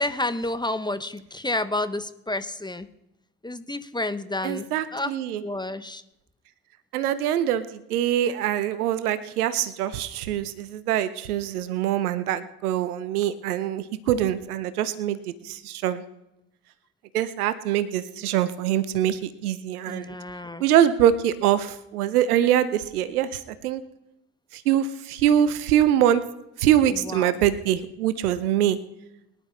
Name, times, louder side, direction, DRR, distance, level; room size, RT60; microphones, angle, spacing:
voice 1, 0.0-2.9 3.4-5.1 5.4-6.0 19.9-20.6 26.9-27.3, left 2 dB, 10° left, 11 dB, 1.0 m, -30 dB
voice 2, 4.4-5.4 6.9-15.2 15.4-16.0 17.1-20.1 20.6-23.8 24.5-26.2 26.6-28.8, right 11 dB, 80° right, 14 dB, 0.9 m, -24 dB
23.0 x 11.0 x 3.3 m, 0.87 s
figure-of-eight pair, 45°, 44 cm